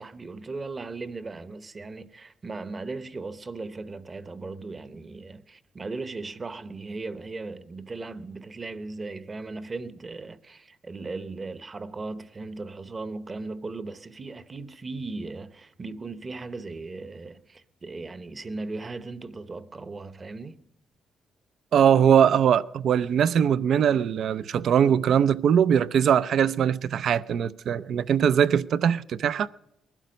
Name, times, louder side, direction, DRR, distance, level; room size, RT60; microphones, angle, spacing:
voice 1, 0.0-20.6, right 3 dB, 30° right, 0.9 m, -37 dB
voice 2, 21.7-29.5, right 8 dB, 65° right, 0.5 m, -21 dB
20.0 x 12.0 x 5.2 m
cardioid pair, 90°, 0 cm